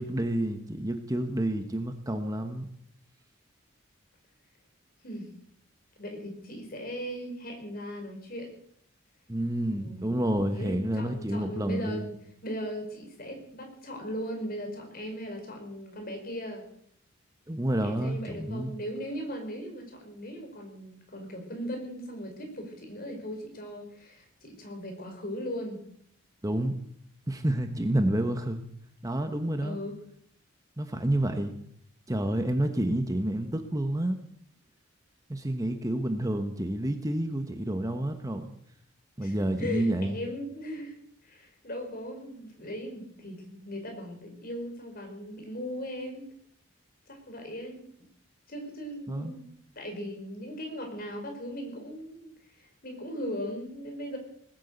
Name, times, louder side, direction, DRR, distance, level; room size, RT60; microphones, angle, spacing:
voice 1, 0.0-2.7 9.3-12.1 17.5-18.7 26.4-26.7 27.3-28.6 29.0-29.8 30.8-31.6 32.1-34.2 35.3-38.5 39.2-40.2 49.1-49.3, right 1 dB, 15° right, 6 dB, 1.1 m, -29 dB
voice 2, 6.0-8.5 9.7-12.0 12.4-16.6 17.8-25.8 29.6-30.0 39.2-41.0 41.2-46.3 47.1-47.8 48.5-49.4 49.7-52.3 52.6-54.2, equal, 45° left, 4 dB, 4.8 m, -38 dB
19.5 x 9.2 x 8.1 m, 0.67 s
head